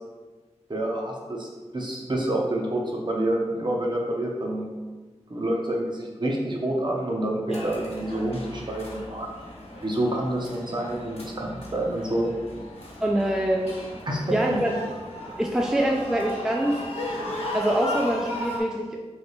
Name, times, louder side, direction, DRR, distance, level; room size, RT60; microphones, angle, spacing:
voice 1, 0.7-1.5 1.7-4.7 5.3-9.3 9.8-12.3 14.1-14.6, right 1 dB, 40° right, -1 dB, 0.8 m, -28 dB
sound 1, 7.5-18.6, left 1 dB, 65° left, 1.1 m, -36 dB
voice 2, 13.0-13.8 14.3-14.7 15.4-16.8 17.5-19.0, right 1 dB, 5° right, 0 dB, 0.3 m, -25 dB
3.3 x 2.9 x 4.2 m, 1.3 s
wide cardioid pair, 85°, 12 cm